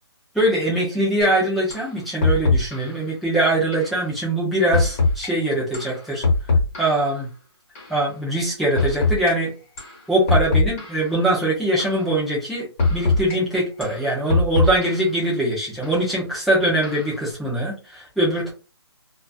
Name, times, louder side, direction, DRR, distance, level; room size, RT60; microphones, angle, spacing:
voice 1, 0.3-6.3 6.8-7.3 7.9-9.5 10.1-18.5, right 1 dB, ahead, -7 dB, 0.3 m, -22 dB
sound 1, 1.2-1.3 1.7-1.9 2.2-3.0 3.7-3.9 4.7-5.3 5.7-7.1 7.8-7.9 8.8-9.3 9.8-10.0 10.3-11.1 11.8-12.0 12.8-13.4 13.8-15.1 15.8-16.0 16.8-17.2, left 3 dB, 30° left, 1.2 m, -22 dB
2.3 x 2.3 x 2.3 m, 0.32 s
hypercardioid pair, 165°, 14 cm